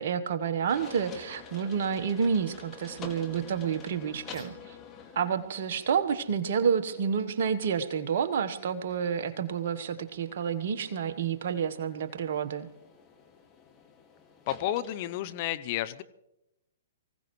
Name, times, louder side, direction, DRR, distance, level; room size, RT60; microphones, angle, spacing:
voice 1, 0.0-4.7 5.1-12.7, right 7 dB, 55° right, 9 dB, 1.2 m, -29 dB
sound 1, 0.7-15.4, left 5 dB, 25° left, 2.1 m, -49 dB
voice 2, 14.5-16.0, left 13 dB, 45° left, 12 dB, 0.8 m, -31 dB
24.0 x 16.5 x 3.2 m, 0.88 s
figure-of-eight pair, 120°, 0 cm